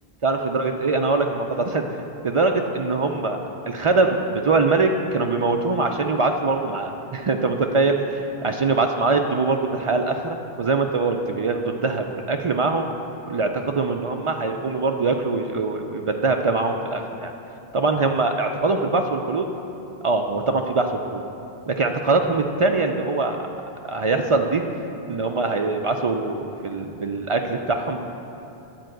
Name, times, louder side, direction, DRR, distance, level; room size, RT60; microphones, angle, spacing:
voice 1, 0.2-1.8 2.2-3.4 3.7-12.9 13.3-17.3 17.7-19.5 20.0-21.2 21.7-23.4 23.9-24.6 25.1-28.0, right 3 dB, 55° right, 4 dB, 0.3 m, -23 dB
10.5 x 4.5 x 7.7 m, 2.9 s
omnidirectional pair, 1.1 m